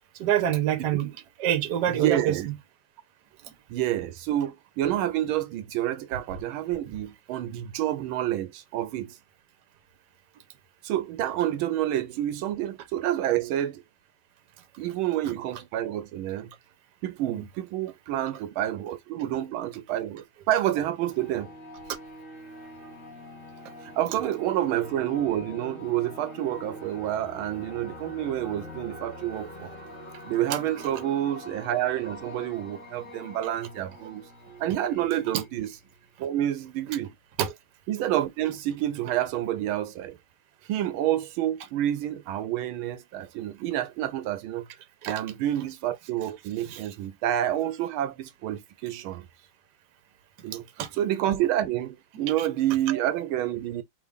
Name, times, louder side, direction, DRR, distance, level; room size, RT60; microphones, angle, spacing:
voice 1, 0.2-1.1 1.4-2.4 17.2-17.4 35.3-35.4 37.4-37.5 45.0-45.1 46.7-46.8 50.8-50.9 52.1-52.5 52.9-53.1, right 10 dB, 60° right, 1.4 m, -26 dB
voice 2, 2.0-2.5 3.7-9.2 10.8-13.8 14.8-16.5 17.0-21.5 23.8-29.7 30.3-34.2 34.6-35.7 36.2-37.1 37.9-40.2 40.7-44.7 45.1-49.3 50.4-50.6 51.0-53.8, right 12 dB, 85° right, 1.5 m, -28 dB
sound 1, 21.1-36.4, left 1 dB, 35° left, 3.0 m, -44 dB
5.0 x 3.5 x 2.4 m
omnidirectional pair, 2.2 m